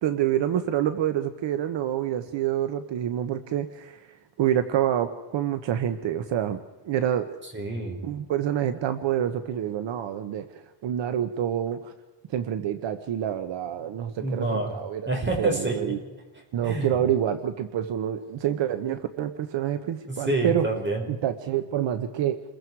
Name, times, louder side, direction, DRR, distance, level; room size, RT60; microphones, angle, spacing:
voice 1, 0.0-6.6 6.8-7.4 8.0-11.9 12.3-15.0 15.4-16.0 16.5-20.7 21.1-22.4, right 10 dB, 70° right, 9 dB, 1.2 m, -27 dB
voice 2, 7.5-8.0 14.2-14.7 15.1-16.0 16.6-17.0 20.1-21.1, right 2 dB, 25° right, 2 dB, 5.1 m, -27 dB
28.5 x 22.0 x 4.8 m, 1.2 s
cardioid pair, 145°, 46 cm